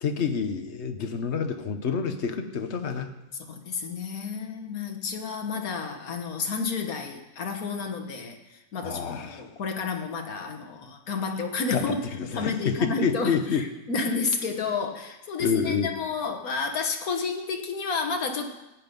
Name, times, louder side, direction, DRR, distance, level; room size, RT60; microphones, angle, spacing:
voice 1, 0.0-3.1 8.8-9.4 11.7-13.7 15.4-15.9, left 6 dB, 50° left, 7 dB, 1.2 m, -28 dB
voice 2, 3.5-12.0 12.3-18.5, left 4 dB, 75° left, 5 dB, 1.8 m, -31 dB
16.0 x 9.8 x 5.3 m, 0.99 s
omnidirectional pair, 1.6 m